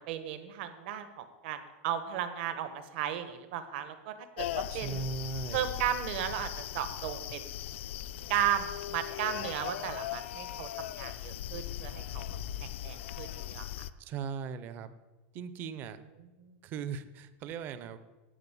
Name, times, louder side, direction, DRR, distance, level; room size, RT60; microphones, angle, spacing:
voice 1, 0.1-5.1 5.5-7.5 8.3-12.2 12.6-13.6 16.4-16.5, right 10 dB, 55° right, 9 dB, 1.2 m, -35 dB
sound 1, 4.4-13.9, left 12 dB, 75° left, 0.5 m, -39 dB
voice 2, 4.7-5.7 14.0-14.9 15.3-16.0 16.6-18.0, right 6 dB, 30° right, 12 dB, 0.6 m, -38 dB
11.0 x 5.4 x 8.3 m, 1.2 s
supercardioid pair, 170°, 7 cm